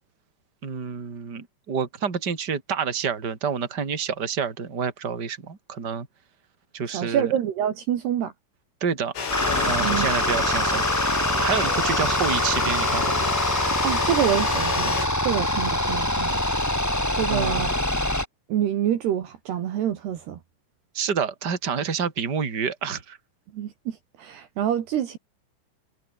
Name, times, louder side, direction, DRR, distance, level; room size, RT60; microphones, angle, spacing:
voice 1, 0.6-6.1 6.7-7.3 8.8-9.1 9.6-11.1 11.4-13.3 17.3-17.7 20.9-23.2, right 6 dB, 25° right, 3.4 m, -28 dB
voice 2, 6.9-8.3 9.8-10.1 13.8-14.9 15.2-16.4 17.1-17.7 18.5-20.4 23.5-25.2, right 10 dB, 65° right, 3.7 m, -26 dB
sound 1, 9.2-15.1, left 5 dB, 85° left, 10.5 m, -29 dB
sound 2, 9.3-18.2, left 1 dB, 10° left, 1.0 m, -24 dB
omnidirectional pair, 5.5 m